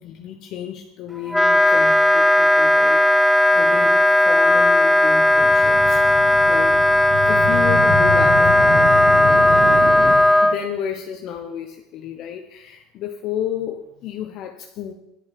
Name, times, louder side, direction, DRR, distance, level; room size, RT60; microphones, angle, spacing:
voice 1, 0.0-6.8 7.3-9.7 10.1-14.9, left 9 dB, 55° left, 4 dB, 0.9 m, -32 dB
Wind instrument woodwind instrument, 1.3-10.6, left 1 dB, 5° left, 0.5 m, -15 dB
sound 1, 5.3-10.1, equal, 70° right, 4.1 m, -27 dB
9.6 x 7.8 x 6.0 m, 0.87 s
supercardioid pair, 110°, 0 cm